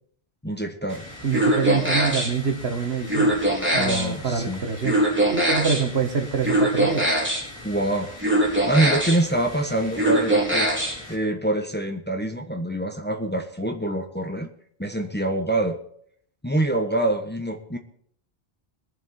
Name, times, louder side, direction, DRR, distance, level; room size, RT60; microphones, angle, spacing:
voice 1, 0.4-1.1 3.8-4.6 7.6-8.1 8.5-10.7 11.1-14.5 14.8-15.8 16.4-17.8, right 1 dB, 10° left, 4 dB, 1.1 m, -25 dB
sound 1, 0.9-11.1, right 1 dB, 10° right, 3.5 m, -24 dB
voice 2, 1.2-5.0 5.3-7.2, right 5 dB, 85° right, 6 dB, 1.9 m, -26 dB
22.5 x 7.6 x 4.3 m, 0.64 s
omnidirectional pair, 1.0 m